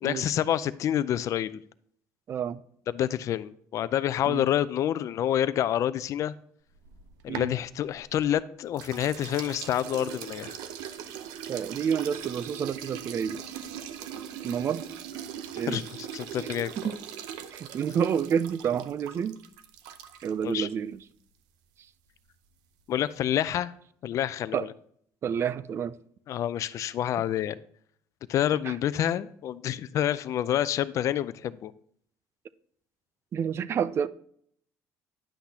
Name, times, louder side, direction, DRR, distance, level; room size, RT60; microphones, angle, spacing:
voice 1, 0.0-1.6 2.9-6.3 7.2-10.6 15.7-16.7 20.4-20.7 22.9-23.7 24.0-24.7 26.3-27.6 28.3-31.7, left 11 dB, 50° left, 0.4 m, -28 dB
voice 2, 2.3-2.6 4.3-4.5 7.3-7.5 11.5-13.4 14.4-14.8 15.6-15.8 16.8-17.0 17.5-19.4 20.2-21.0 24.5-24.7 25.2-25.9 28.6-28.7 33.3-34.1, right 7 dB, 40° right, 0.4 m, -29 dB
sound 1, 6.8-8.4 8.8-20.5, right 9 dB, 85° right, 0.6 m, -40 dB
10.0 x 6.0 x 2.8 m
cardioid pair, 115°, 7 cm